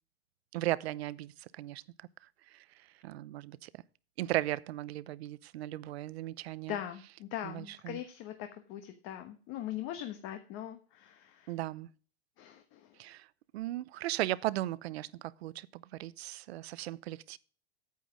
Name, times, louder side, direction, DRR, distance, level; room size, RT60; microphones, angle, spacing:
voice 1, 0.5-3.8 4.2-6.8 7.4-8.0 11.5-11.9 13.0-17.4, right 15 dB, 70° right, 0.7 m, -37 dB
voice 2, 6.7-11.5 12.4-13.0, left 11 dB, 40° left, 1.2 m, -41 dB
9.4 x 8.4 x 4.9 m
supercardioid pair, 140°, 32 cm